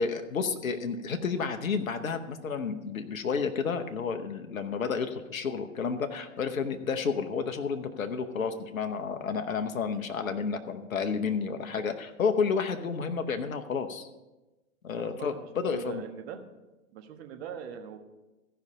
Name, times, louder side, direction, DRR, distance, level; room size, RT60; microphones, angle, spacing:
voice 1, 0.0-14.1 14.8-16.0, left 5 dB, 80° left, 7 dB, 1.0 m, -31 dB
voice 2, 15.0-16.4 16.9-18.0, right 8 dB, 45° right, 5 dB, 1.5 m, -42 dB
14.5 x 5.6 x 5.1 m, 1.1 s
figure-of-eight pair, 110°, 40 cm